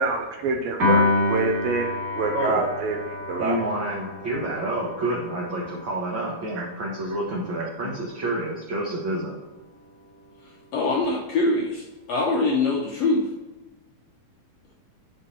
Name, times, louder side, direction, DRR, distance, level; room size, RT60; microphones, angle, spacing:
voice 1, 0.0-3.6 6.6-6.7, right 4 dB, 75° right, 3 dB, 2.5 m, -26 dB
Piano, 0.8-7.2, left 2 dB, 45° right, 3.4 m, -28 dB
voice 2, 3.4-9.4, right 1 dB, 60° right, -4 dB, 1.3 m, -29 dB
voice 3, 10.7-13.3, left 2 dB, 75° left, -1 dB, 1.5 m, -23 dB
9.6 x 4.7 x 4.3 m, 1.2 s
omnidirectional pair, 4.4 m